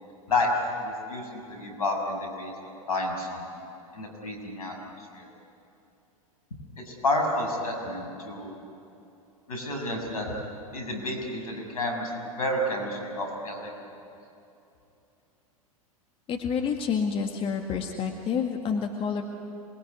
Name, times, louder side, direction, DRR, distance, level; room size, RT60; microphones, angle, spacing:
voice 1, 0.8-2.5 2.9-3.5 3.9-4.8 5.1-5.3 6.8-8.6 9.5-10.3 10.7-12.1 12.4-13.7, left 2 dB, 75° left, 2 dB, 6.9 m, -30 dB
voice 2, 16.3-19.2, left 6 dB, 30° left, 3 dB, 2.1 m, -28 dB
27.0 x 21.5 x 9.7 m, 2.8 s
figure-of-eight pair, 95°, 19 cm